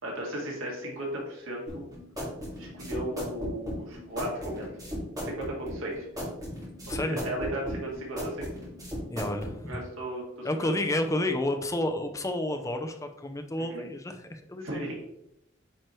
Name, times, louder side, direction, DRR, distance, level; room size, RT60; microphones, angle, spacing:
voice 1, 0.0-1.9 2.6-4.7 5.2-6.1 6.9-8.5 9.7-10.7 13.6-13.8 14.6-15.0, right 1 dB, 85° right, -2 dB, 2.1 m, -35 dB
sound 1, 1.7-9.5, equal, 20° right, 2.3 m, -36 dB
voice 2, 6.5-7.2 9.1-9.8 10.4-14.9, left 1 dB, 15° left, 6 dB, 0.5 m, -31 dB
8.9 x 4.6 x 3.1 m, 0.84 s
head